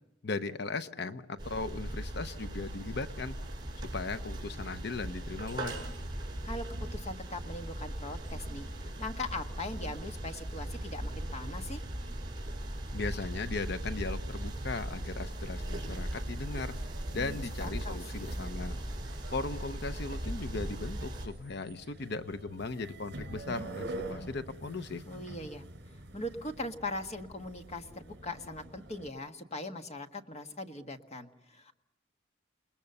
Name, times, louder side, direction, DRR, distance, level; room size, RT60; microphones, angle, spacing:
voice 1, 0.2-3.4 3.8-5.8 12.9-16.7 17.1-18.8 19.3-25.0, left 3 dB, 55° left, 11 dB, 0.8 m, -37 dB
sound 1, 1.4-21.3, right 1 dB, 25° right, 4.9 m, -38 dB
voice 2, 6.4-11.8 17.1-18.4 25.0-25.6 26.1-31.7, left 2 dB, 35° left, 6 dB, 1.5 m, -40 dB
sound 2, 15.6-29.1, right 2 dB, 60° right, 4.9 m, -47 dB
29.0 x 20.5 x 6.8 m, 0.81 s
head